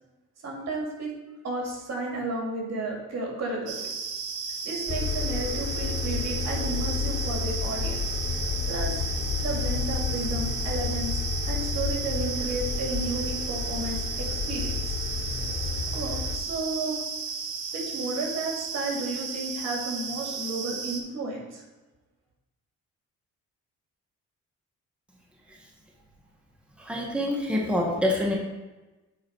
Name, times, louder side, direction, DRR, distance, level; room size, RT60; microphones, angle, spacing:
voice 1, 0.4-1.1 1.4-3.7 4.6-8.0 8.7-8.9 9.4-14.9 15.9-17.0 17.7-21.6, right 2 dB, 60° right, -1 dB, 2.4 m, -33 dB
sound 1, 3.7-21.0, right 5 dB, 90° right, 1.0 m, -34 dB
sound 2, 4.9-16.4, left 5 dB, 35° left, 0.9 m, -31 dB
voice 2, 26.8-28.4, left 1 dB, 5° right, -2 dB, 1.5 m, -26 dB
8.6 x 4.0 x 4.7 m, 1.1 s
cardioid pair, 90°, 30 cm